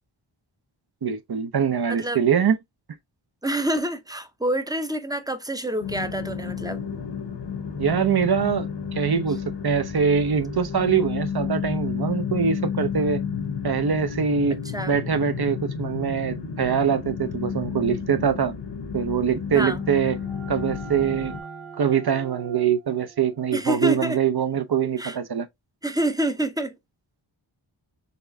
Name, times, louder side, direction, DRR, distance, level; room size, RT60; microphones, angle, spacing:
voice 1, 1.0-2.6 7.8-13.2 13.6-14.6 14.9-18.5 18.9-20.2 20.5-21.4 21.8-25.5, right 7 dB, 50° right, 0.7 m, -23 dB
voice 2, 1.9-2.2 3.4-6.8 14.7-15.0 19.5-19.8 23.5-24.2 25.0-25.2 25.8-26.7, right 1 dB, 10° right, 0.6 m, -27 dB
sound 1, 5.8-21.4, left 6 dB, 55° left, 0.9 m, -31 dB
sound 2, 19.6-25.1, right 6 dB, 80° right, 1.2 m, -44 dB
4.2 x 3.4 x 2.6 m
wide cardioid pair, 65°, 49 cm